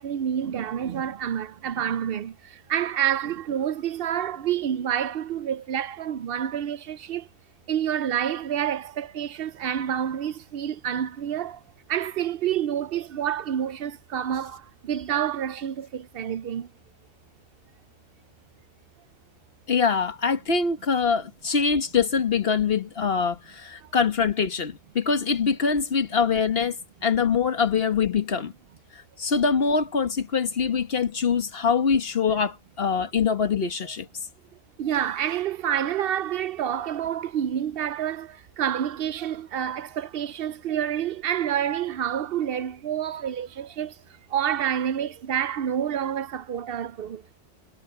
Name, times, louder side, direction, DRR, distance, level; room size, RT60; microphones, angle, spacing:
voice 1, 0.0-7.3 7.7-11.6 11.9-16.7 23.8-23.9 34.8-44.0 44.3-47.2, right 9 dB, 65° right, 0.7 m, -28 dB
voice 2, 19.7-26.8 27.0-28.5 29.2-34.1, left 5 dB, 65° left, 1.5 m, -24 dB
omnidirectional pair, 1.1 m